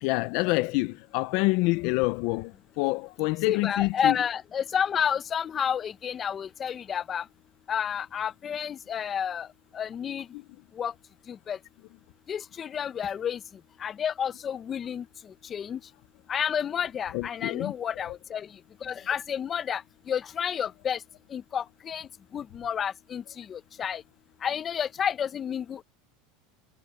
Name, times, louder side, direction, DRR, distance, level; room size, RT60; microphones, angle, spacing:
voice 1, 0.0-4.2 17.1-17.7, left 23 dB, 65° left, 0.6 m, -27 dB
voice 2, 3.5-7.2 7.7-9.5 9.7-10.3 10.8-10.9 11.3-11.6 12.3-13.4 13.8-15.0 15.5-15.8 16.3-18.5 18.8-19.8 20.1-21.0 21.3-22.1 22.3-24.0 24.4-25.8, left 8 dB, 30° left, 0.7 m, -30 dB
supercardioid pair, 125°, 0 cm